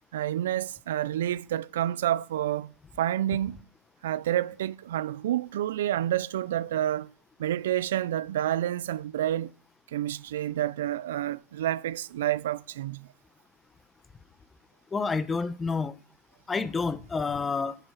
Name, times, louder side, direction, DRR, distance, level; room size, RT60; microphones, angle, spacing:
voice 1, 0.1-3.6 4.0-7.1 7.4-9.5 9.9-13.1, right 12 dB, 75° right, 0.4 m, -29 dB
voice 2, 14.9-16.0 16.5-17.8, left 4 dB, 15° left, 0.8 m, -29 dB
8.0 x 7.0 x 5.7 m
hypercardioid pair, 110°, 0 cm